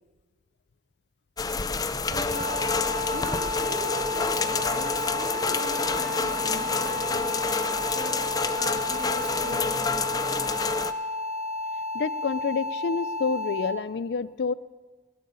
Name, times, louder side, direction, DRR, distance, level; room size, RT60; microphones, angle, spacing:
sound 1, 1.4-10.9, left 4 dB, 20° left, 0.5 m, -28 dB
voice 1, 2.1-2.7 3.0-10.3, right 1 dB, 75° right, 0 dB, 2.9 m, -40 dB
sound 2, 2.3-13.7, left 2 dB, 5° right, 3.2 m, -32 dB
voice 2, 11.9-14.5, left 5 dB, 75° left, 18 dB, 0.4 m, -28 dB
20.0 x 7.7 x 7.0 m, 1.4 s
head